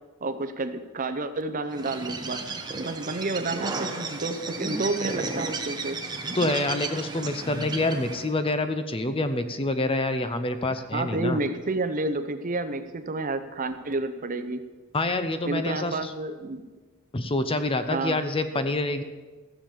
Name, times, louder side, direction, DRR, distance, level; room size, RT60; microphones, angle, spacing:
voice 1, 0.2-2.4 2.7-6.0 10.9-14.7 15.4-16.6 17.9-18.2, right 2 dB, 40° right, 10 dB, 0.7 m, -30 dB
Bird, 1.7-8.3, right 3 dB, 20° right, 1.1 m, -33 dB
voice 2, 6.3-11.4 14.9-16.1 17.1-19.0, left 2 dB, 25° left, 10 dB, 0.7 m, -27 dB
15.0 x 7.2 x 7.2 m, 1.3 s
head